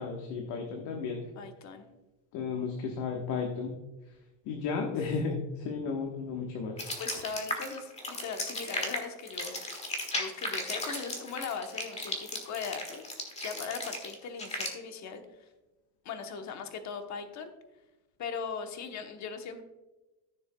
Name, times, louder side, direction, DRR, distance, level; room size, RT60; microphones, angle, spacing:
voice 1, 0.0-1.2 2.3-3.7 4.4-6.9, left 5 dB, 60° left, 1 dB, 1.3 m, -33 dB
voice 2, 1.3-1.8 7.0-9.6 10.2-13.1 13.4-15.5 16.0-17.5 18.2-19.6, left 5 dB, 35° left, 6 dB, 1.0 m, -39 dB
sound 1, 6.8-14.7, left 2 dB, 15° left, 1.5 m, -35 dB
14.5 x 6.8 x 2.2 m, 1.1 s
cardioid pair, 160°, 47 cm